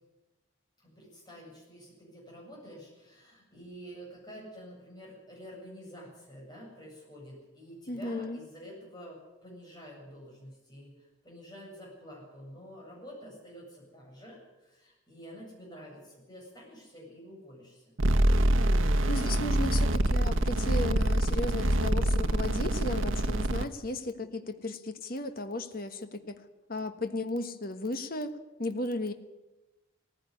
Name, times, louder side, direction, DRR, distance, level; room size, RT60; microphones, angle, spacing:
voice 1, 0.8-17.9, equal, 20° left, -2 dB, 8.0 m, -48 dB
voice 2, 7.9-8.4 19.1-26.4 26.7-29.1, left 2 dB, 50° left, 8 dB, 1.4 m, -35 dB
sound 1, 18.0-23.6, right 1 dB, 90° right, 1.1 m, -25 dB
17.0 x 15.5 x 9.9 m, 1.1 s
head